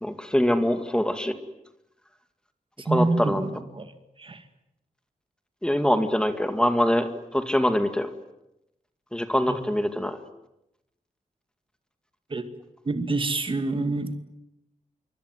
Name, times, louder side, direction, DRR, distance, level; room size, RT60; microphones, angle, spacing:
voice 1, 0.0-1.3 2.9-3.5 5.6-8.1 9.1-10.2, equal, 5° left, 8 dB, 2.2 m, -24 dB
voice 2, 2.8-3.9 4.2-4.5 9.5-9.7 12.3-12.4 12.8-14.1, right 3 dB, 40° right, 9 dB, 2.5 m, -27 dB
26.0 x 24.0 x 9.5 m, 0.86 s
wide cardioid pair, 110°, 14 cm